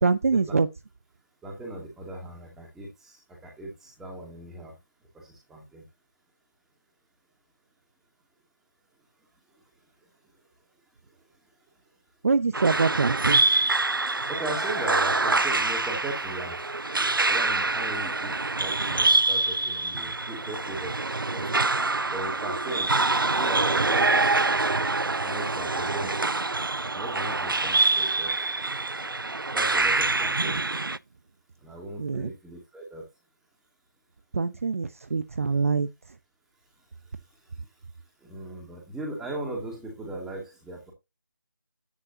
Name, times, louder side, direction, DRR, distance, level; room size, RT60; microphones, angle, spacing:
voice 1, 0.0-0.7 12.2-13.4 32.0-32.3 34.3-35.9, right 4 dB, 40° right, 0.8 m, -24 dB
voice 2, 1.4-4.7 5.1-5.8 14.3-16.5 17.3-18.3 18.6-20.9 21.3-21.6 22.1-22.9 23.2-24.4 25.2-26.3 26.9-28.3 29.5-30.6 31.6-33.0 38.2-40.9, right 2 dB, 5° right, 2.5 m, -38 dB
sound 1, 12.5-31.0, right 3 dB, 85° right, 0.6 m, -25 dB
10.5 x 9.9 x 2.8 m
figure-of-eight pair, 160°, 11 cm